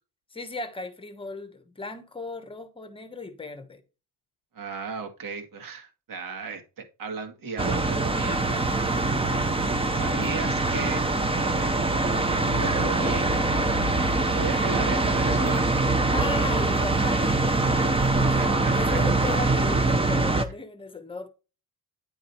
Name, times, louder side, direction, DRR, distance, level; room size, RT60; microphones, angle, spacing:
voice 1, 0.3-3.8 9.9-10.3 13.5-15.2 16.1-21.3, left 3 dB, 15° left, 1.1 m, -37 dB
voice 2, 4.5-8.4 9.9-11.0 11.4-13.3 14.3-15.7 17.0-17.1 18.4-19.0, right 5 dB, 60° right, 2.2 m, -36 dB
sound 1, 7.6-20.4, right 2 dB, 15° right, 0.8 m, -23 dB
10.0 x 4.9 x 4.3 m
cardioid pair, 170°, 38 cm